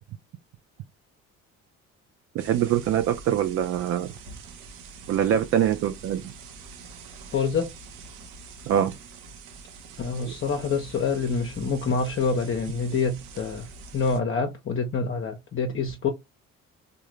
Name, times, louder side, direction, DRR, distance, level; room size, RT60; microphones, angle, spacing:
voice 1, 2.3-4.1 5.1-6.3 8.6-9.0 10.3-10.4, right 10 dB, 35° right, 0.4 m, -24 dB
sound 1, 2.4-14.2, right 4 dB, 55° right, 0.8 m, -45 dB
voice 2, 7.3-7.7 10.0-13.7 13.9-16.1, left 5 dB, 30° left, 0.7 m, -26 dB
3.6 x 2.2 x 3.1 m
figure-of-eight pair, 50°, 40 cm